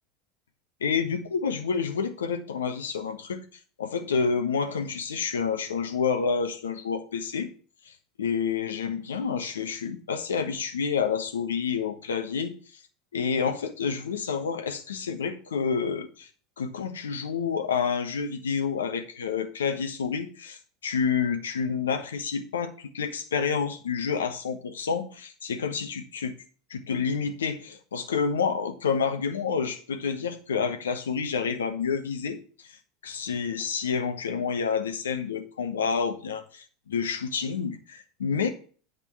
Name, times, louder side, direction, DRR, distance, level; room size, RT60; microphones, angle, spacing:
voice 1, 0.8-3.4 3.8-7.5 7.9-8.0 8.2-12.5 13.1-16.3 16.6-26.3 26.7-32.4 33.0-38.5, left 6 dB, 75° left, 7 dB, 1.2 m, -29 dB
9.1 x 5.2 x 6.2 m, 0.40 s
figure-of-eight pair, 75°, 0 cm